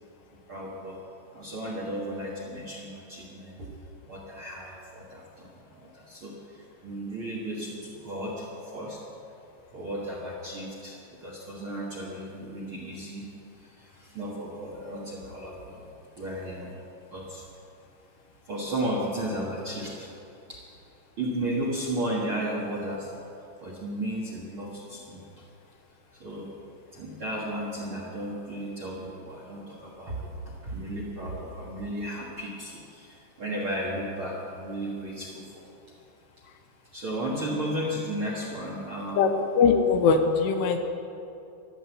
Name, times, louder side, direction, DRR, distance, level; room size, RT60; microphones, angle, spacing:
voice 1, 0.5-1.0 1.3-3.7 4.0-9.0 9.7-13.3 13.5-15.9 16.2-16.8 17.1-17.5 18.4-20.1 20.5-20.6 21.2-23.1 23.6-25.4 26.1-26.5 26.9-35.7 36.9-39.3, right 1 dB, 55° right, -4 dB, 1.4 m, -34 dB
voice 2, 39.6-40.8, left 5 dB, 80° left, 5 dB, 2.8 m, -21 dB
13.5 x 10.5 x 8.0 m, 2.7 s
omnidirectional pair, 5.0 m